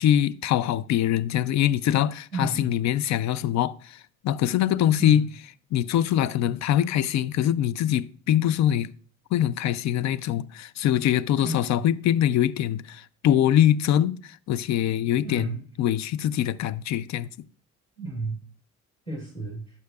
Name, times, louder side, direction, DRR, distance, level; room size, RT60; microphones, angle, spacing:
voice 1, 0.0-5.2 5.7-8.9 9.3-17.3, left 11 dB, 65° left, 0.4 m, -23 dB
voice 2, 2.3-2.7 5.0-5.3 11.4-11.8 15.2-15.6 18.0-18.4 19.1-19.6, right 2 dB, 20° left, 4.0 m, -32 dB
11.5 x 5.6 x 2.4 m
cardioid pair, 90°, 30 cm